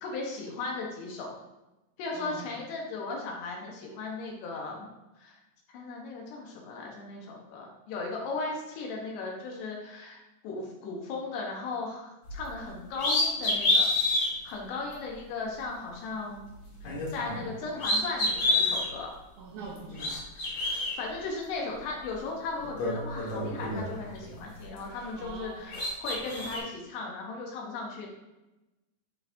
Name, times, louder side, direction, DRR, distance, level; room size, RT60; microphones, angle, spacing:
voice 1, 0.0-1.4 2.0-4.9 5.2-5.4 5.7-10.2 10.4-13.9 14.4-16.5 16.8-19.1 20.5-28.1, left 3 dB, 75° left, -1 dB, 2.9 m, -37 dB
sound 1, 12.3-12.5 12.9-14.3 14.9-15.0 16.8-17.5 17.8-18.9 19.8-20.9 22.1-22.2 22.6-24.3 24.6-25.4 25.7-26.6, left 2 dB, 55° left, 1.8 m, -28 dB
voice 2, 19.4-20.2 25.1-25.7, right 4 dB, 75° right, -4 dB, 2.2 m, -43 dB
10.5 x 3.8 x 2.7 m, 1.0 s
omnidirectional pair, 5.2 m